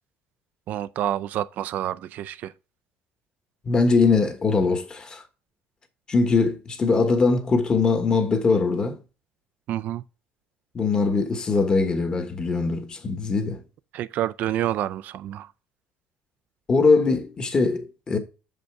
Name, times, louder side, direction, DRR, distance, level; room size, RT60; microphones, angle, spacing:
voice 1, 0.7-2.5 9.7-10.0 13.9-15.5, right 12 dB, 50° right, 0.4 m, -28 dB
voice 2, 3.6-5.2 6.1-9.0 10.7-13.6 16.7-18.2, left 4 dB, 25° left, 1.3 m, -21 dB
6.7 x 5.3 x 4.7 m
cardioid pair, 150°, 4 cm